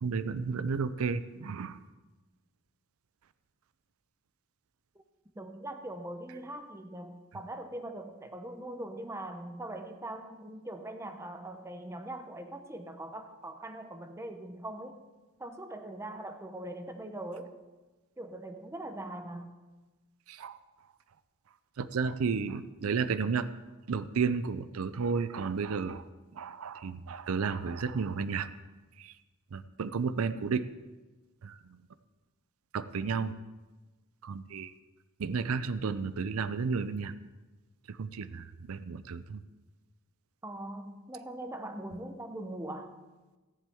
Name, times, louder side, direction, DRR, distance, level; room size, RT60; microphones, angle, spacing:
voice 1, 0.0-1.8 20.3-20.6 21.8-23.5 23.9-26.0 26.3-28.5 29.0-29.1 29.5-30.6 31.4-31.6 32.7-33.3 34.2-34.7 35.2-37.1 37.9-39.4, right 5 dB, 80° right, 14 dB, 0.5 m, -32 dB
voice 2, 5.4-15.0 15.4-17.6 18.2-19.5 40.4-42.9, right 1 dB, 15° right, 7 dB, 0.7 m, -41 dB
14.5 x 10.5 x 3.5 m, 1.2 s
head